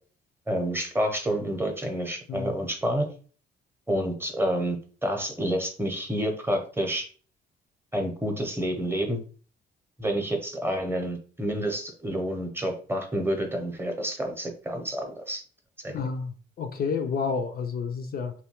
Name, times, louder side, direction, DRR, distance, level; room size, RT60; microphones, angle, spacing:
voice 1, 0.5-3.1 3.9-4.8 5.0-7.1 7.9-9.2 10.0-15.4 15.8-15.9, equal, 10° right, 3 dB, 0.7 m, -29 dB
voice 2, 15.9-16.3 16.6-18.3, left 5 dB, 50° left, 6 dB, 0.4 m, -30 dB
2.7 x 2.2 x 2.9 m, 0.40 s
cardioid pair, 90°, 20 cm